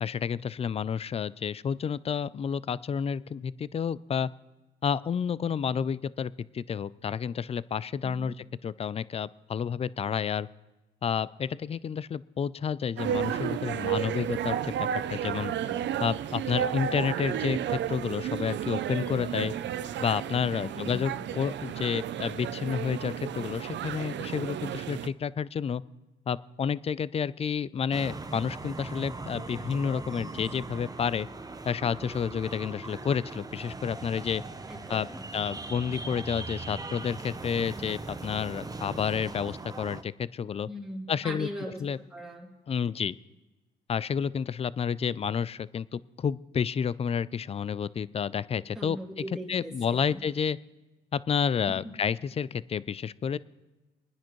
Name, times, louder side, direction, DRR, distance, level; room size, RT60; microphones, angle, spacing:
voice 1, 0.0-4.3 4.8-8.3 8.6-10.5 11.0-14.7 15.1-15.5 16.0-19.5 20.0-25.8 26.3-31.3 31.6-34.4 34.9-35.1 35.3-40.7 41.1-41.5 41.8-42.0 42.7-43.2 43.9-50.6 51.1-53.4, left 7 dB, 30° left, 19 dB, 0.4 m, -30 dB
voice 2, 8.0-8.3 15.6-16.0 20.6-21.2 34.7-35.2 40.7-41.8 42.1-42.5 48.7-50.2 51.7-51.9, equal, ahead, -4 dB, 2.7 m, -40 dB
sound 1, 13.0-25.1, right 10 dB, 65° right, 0.6 m, -32 dB
sound 2, 27.9-40.0, right 3 dB, 20° right, 0.7 m, -40 dB
23.5 x 10.0 x 3.1 m, 1.1 s
cardioid pair, 90°, 20 cm